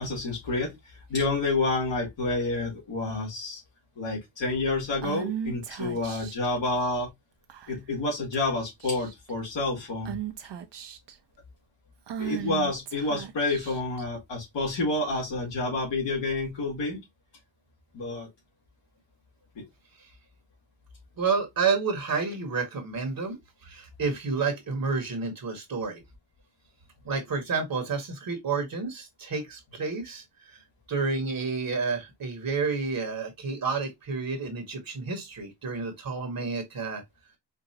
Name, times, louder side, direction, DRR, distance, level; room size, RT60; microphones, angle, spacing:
voice 1, 0.0-3.6 4.0-7.1 7.7-10.2 12.2-17.0 17.9-18.3 19.6-19.7, left 2 dB, 80° left, 2.0 m, -29 dB
Female speech woman speaking / Whispering, 5.0-6.5 7.5-7.9 8.3-8.5 8.8-9.3 10.1-11.1 12.1-14.0, right 9 dB, 70° right, 0.8 m, -36 dB
voice 2, 21.2-26.0 27.0-30.6 30.9-37.0, right 4 dB, 50° right, 1.2 m, -30 dB
4.5 x 2.4 x 2.8 m
wide cardioid pair, 135°, 43 cm